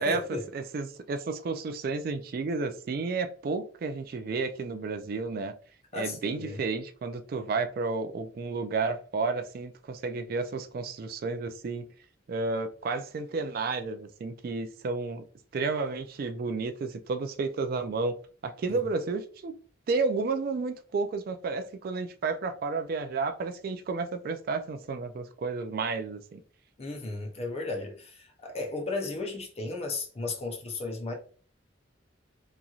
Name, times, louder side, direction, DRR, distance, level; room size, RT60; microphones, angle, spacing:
voice 1, 0.0-0.5 5.9-6.6 18.7-18.9 26.8-31.1, left 3 dB, 35° left, 0.6 m, -35 dB
voice 2, 0.5-5.5 6.0-11.8 12.3-15.2 15.5-18.1 18.4-19.5 19.9-26.4, right 4 dB, 50° right, 0.3 m, -31 dB
2.9 x 2.6 x 2.3 m
head